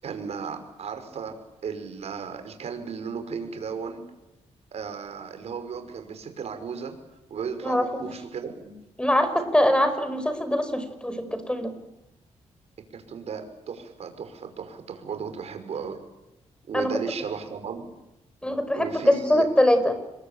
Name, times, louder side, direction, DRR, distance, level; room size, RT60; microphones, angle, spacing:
voice 1, 0.0-1.3 1.6-4.0 4.7-6.9 7.3-8.7 12.9-16.0 16.7-17.9 18.7-19.5, right 6 dB, 65° right, 7 dB, 5.7 m, -35 dB
voice 2, 7.6-8.1 9.0-11.7 16.7-16.9 18.4-20.0, left 1 dB, 10° left, 10 dB, 5.2 m, -23 dB
29.0 x 22.5 x 8.9 m, 0.95 s
cardioid pair, 110°, 12 cm